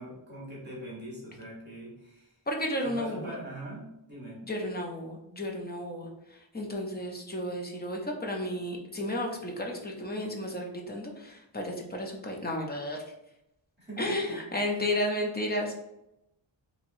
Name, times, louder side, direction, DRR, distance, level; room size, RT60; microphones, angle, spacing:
voice 1, 0.0-2.4 2.8-4.4 13.8-14.4, right 1 dB, 20° right, -6 dB, 1.4 m, -42 dB
voice 2, 2.5-3.3 4.4-13.0 14.0-15.7, left 1 dB, 20° left, 1 dB, 0.6 m, -33 dB
4.5 x 3.0 x 2.7 m, 0.85 s
wide cardioid pair, 175°, 46 cm